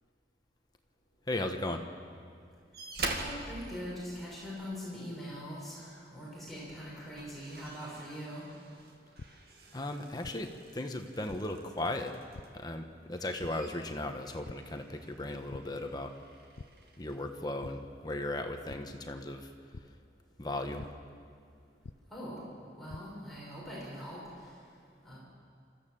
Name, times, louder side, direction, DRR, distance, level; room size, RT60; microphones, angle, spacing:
voice 1, 1.3-1.8 9.7-12.2 12.5-16.1 17.0-19.5 20.4-20.9, left 1 dB, 20° left, 5 dB, 1.2 m, -36 dB
sound 1, 2.7-4.8 6.3-6.5 6.9-12.6 13.0-17.2 18.1-18.2, right 2 dB, 60° right, 2.2 m, -45 dB
voice 2, 3.1-8.4 22.1-22.4 22.8-24.2 25.0-25.2, equal, ahead, -7 dB, 5.8 m, -42 dB
sound 2, 9.2-9.3 10.2-10.3 11.3-11.4 12.3-12.4 13.4-13.5 14.4-14.5 15.0-15.2 15.5-15.6 16.6-16.7 17.6-17.7 18.7-18.8 19.7-19.8 20.8-20.9 21.8-21.9 22.6-23.0, left 3 dB, 75° left, 0.6 m, -45 dB
27.5 x 14.5 x 7.6 m, 2.2 s
head